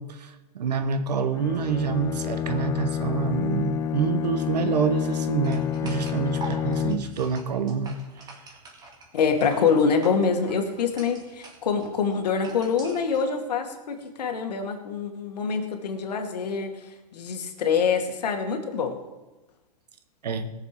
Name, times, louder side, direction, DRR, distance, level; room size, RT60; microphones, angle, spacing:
voice 1, 0.0-8.0 20.2-20.5, right 6 dB, 90° right, 10 dB, 1.3 m, -27 dB
Bowed string instrument, 1.3-7.3, left 9 dB, 15° left, 0.3 m, -29 dB
sound 1, 5.4-13.2, right 2 dB, 20° right, 2.1 m, -45 dB
voice 2, 9.1-16.7 17.1-19.0, left 5 dB, 80° left, 4 dB, 2.0 m, -25 dB
18.0 x 6.9 x 5.0 m, 1.1 s
hypercardioid pair, 145°, 20 cm